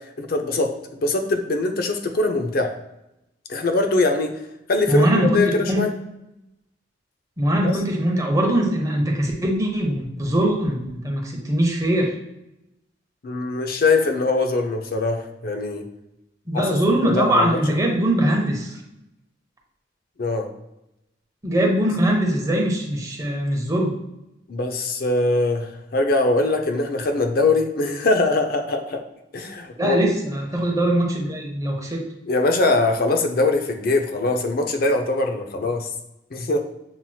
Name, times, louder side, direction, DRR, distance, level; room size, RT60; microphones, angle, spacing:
voice 1, 0.2-0.7 1.0-2.7 3.5-4.3 4.7-5.9 7.6-7.8 13.2-15.8 16.5-17.6 20.2-20.5 24.5-29.0 29.3-30.0 32.3-35.9 36.3-36.6, left 2 dB, 55° left, 5 dB, 0.6 m, -22 dB
voice 2, 4.9-5.8 7.4-12.1 16.5-18.7 21.4-23.9 29.8-32.1, right 1 dB, 20° right, 0 dB, 0.8 m, -21 dB
7.2 x 2.9 x 2.3 m, 0.88 s
head